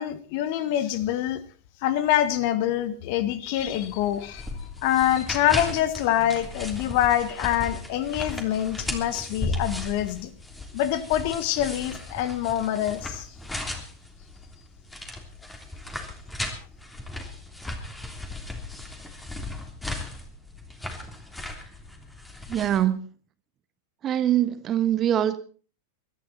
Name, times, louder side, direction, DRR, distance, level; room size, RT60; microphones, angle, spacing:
voice 1, 0.0-1.4 1.8-4.5 4.8-10.3 10.7-13.3, left 11 dB, 45° left, 14 dB, 1.6 m, -25 dB
sound 1, 3.6-22.8, left 2 dB, 10° left, 3.3 m, -36 dB
voice 2, 22.5-23.0 24.0-25.4, right 11 dB, 30° right, 12 dB, 1.4 m, -23 dB
22.5 x 13.0 x 4.4 m, 0.40 s
figure-of-eight pair, 90°, 0 cm